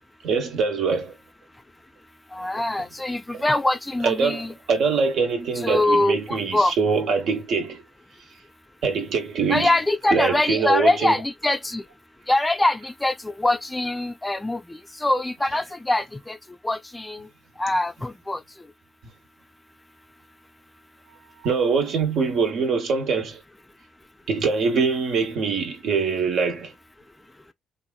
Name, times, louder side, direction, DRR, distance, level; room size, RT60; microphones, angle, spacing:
voice 1, 0.2-1.1 3.3-3.4 4.0-7.8 8.8-9.7 10.1-11.1 21.4-23.4 24.3-26.7, right 5 dB, 70° right, 1.0 m, -23 dB
voice 2, 2.3-4.5 5.6-6.7 9.5-11.8 12.3-16.4 16.6-17.3 17.6-18.4, left 2 dB, 15° left, 0.4 m, -23 dB
2.7 x 2.5 x 2.2 m
supercardioid pair, 70°, 0 cm